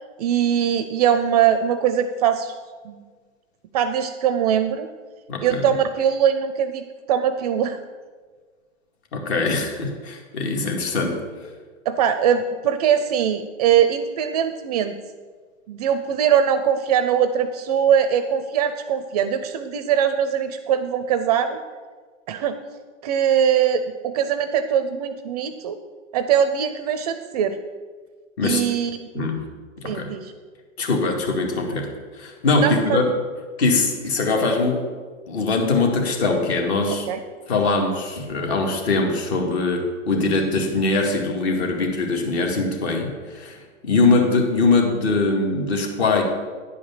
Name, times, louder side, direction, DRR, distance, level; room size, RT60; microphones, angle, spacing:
voice 1, 0.2-2.5 2.8-3.0 3.7-4.9 5.4-7.8 11.9-15.0 15.7-21.6 22.3-22.6 23.0-25.8 26.1-27.6 28.4-29.3 29.8-30.3 32.6-33.0 37.1-37.2, right 8 dB, 30° right, 11 dB, 0.4 m, -21 dB
voice 2, 5.3-5.6 9.1-11.2 28.4-28.6 29.2-29.4 29.8-30.1 30.8-33.1 33.6-34.8 35.3-37.1 37.5-43.6 43.8-46.2, left 3 dB, 55° left, 2 dB, 2.2 m, -22 dB
9.9 x 5.1 x 7.2 m, 1.5 s
hypercardioid pair, 135°, 39 cm